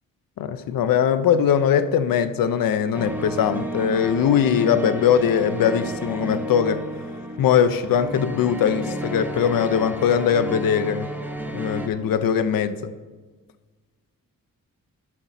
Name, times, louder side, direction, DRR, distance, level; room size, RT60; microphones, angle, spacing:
voice 1, 0.4-6.8 7.4-11.1 11.5-12.8, left 8 dB, 80° left, 12 dB, 0.5 m, -21 dB
sound 1, 2.9-11.9, right 1 dB, 5° right, 1.0 m, -32 dB
11.5 x 4.1 x 5.9 m, 1.4 s
wide cardioid pair, 135°, 34 cm